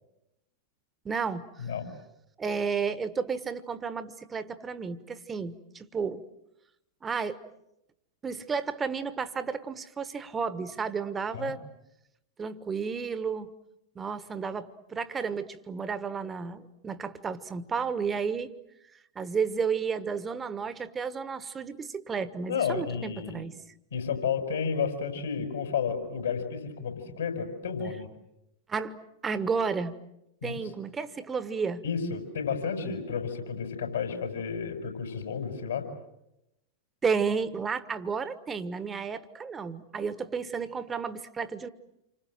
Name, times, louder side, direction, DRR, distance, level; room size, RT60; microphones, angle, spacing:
voice 1, 1.0-1.4 2.4-6.3 7.0-7.4 8.2-11.6 12.4-13.5 13.9-18.5 19.1-23.5 28.7-29.0 29.2-29.9 30.4-31.8 37.0-41.7, right 5 dB, 20° right, 13 dB, 1.3 m, -32 dB
voice 2, 22.5-23.4 23.9-28.1 30.4-30.6 31.8-35.8, left 6 dB, 70° left, 4 dB, 6.2 m, -31 dB
28.5 x 25.5 x 7.7 m, 0.86 s
figure-of-eight pair, 90°, 0 cm